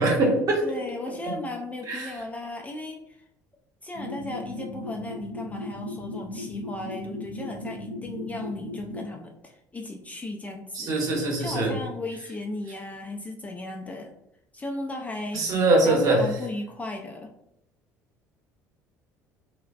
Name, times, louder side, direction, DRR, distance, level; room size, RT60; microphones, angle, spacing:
voice 1, 0.0-0.6 1.3-1.4 1.9-2.2 10.7-11.7 15.3-16.2, right 2 dB, 40° right, 0 dB, 0.8 m, -22 dB
voice 2, 0.6-3.2 3.8-10.9 11.4-14.1 14.5-15.5 15.8-17.3, left 2 dB, 15° left, 2 dB, 0.3 m, -36 dB
sound 1, 3.9-9.1, left 2 dB, 70° left, 0.5 m, -37 dB
3.1 x 2.0 x 2.4 m, 0.81 s
figure-of-eight pair, 60°, 9 cm